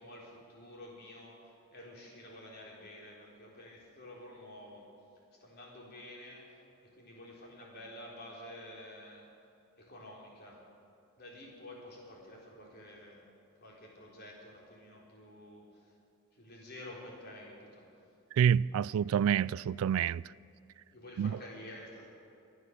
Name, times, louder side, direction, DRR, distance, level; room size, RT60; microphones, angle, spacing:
voice 1, 0.0-4.9 5.4-6.6 6.8-9.3 9.8-10.6 11.2-13.2 13.6-15.9 16.3-17.9 20.9-22.1, left 1 dB, 50° left, 4.0 m, -50 dB
voice 2, 18.3-20.2 21.2-21.3, right 8 dB, 90° right, 0.3 m, -27 dB
22.5 x 9.8 x 6.6 m
head